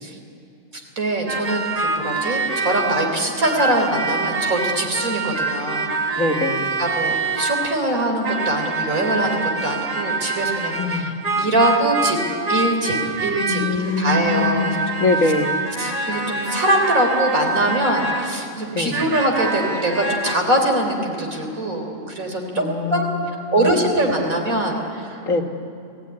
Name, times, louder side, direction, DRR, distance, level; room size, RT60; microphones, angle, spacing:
voice 1, 1.0-6.4 6.8-12.2 12.5-14.8 15.2-15.3 15.8-22.6 22.9-25.2, right 1 dB, 85° right, 2 dB, 4.2 m, -23 dB
sound 1, 1.3-8.0 8.2-18.5 18.9-20.4, right 3 dB, 30° right, 1.5 m, -25 dB
voice 2, 6.2-6.7 10.8-11.0 13.5-15.6 18.7-19.0 22.6-23.9 25.3-25.5, left 3 dB, 70° left, 5 dB, 2.1 m, -23 dB
30.0 x 17.5 x 9.9 m, 2.6 s
omnidirectional pair, 1.4 m